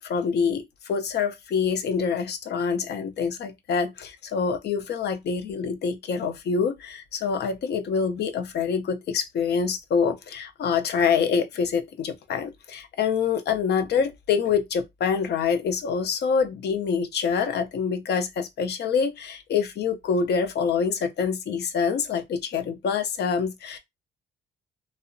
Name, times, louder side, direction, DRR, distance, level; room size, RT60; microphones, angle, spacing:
voice 1, 0.0-23.8, left 6 dB, 55° left, 0.5 m, -26 dB
2.7 x 2.0 x 2.5 m
cardioid pair, 90°, 20 cm